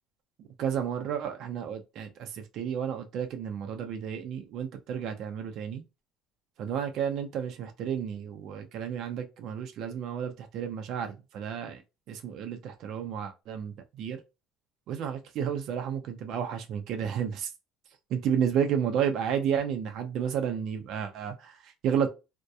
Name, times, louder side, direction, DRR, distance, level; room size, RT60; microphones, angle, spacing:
voice 1, 0.6-5.8 6.6-11.8 12.1-14.2 14.9-17.5 18.1-22.1, right 8 dB, 60° right, 0.5 m, -32 dB
2.6 x 2.2 x 2.2 m
cardioid pair, 120°, 0 cm